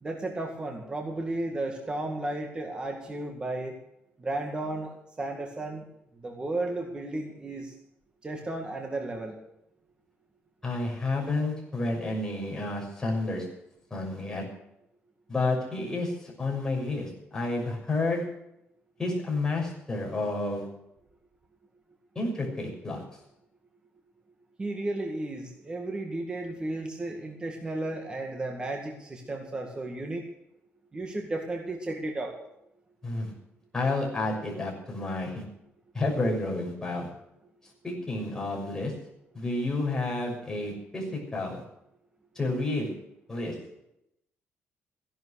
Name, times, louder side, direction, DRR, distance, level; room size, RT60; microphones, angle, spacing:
voice 1, 0.0-3.7 4.2-5.8 6.2-7.7 8.2-9.4 24.6-30.2 30.9-32.4, right 2 dB, 20° right, 2 dB, 2.0 m, -34 dB
voice 2, 10.6-13.5 13.9-14.4 15.3-18.2 19.0-20.7 22.1-23.0 33.0-33.3 33.7-35.4 35.9-37.1 37.8-38.9 39.3-41.6 42.3-42.9 43.3-43.5, left 2 dB, 15° left, -2 dB, 6.3 m, -30 dB
16.0 x 11.0 x 6.4 m, 0.82 s
cardioid pair, 150°, 5 cm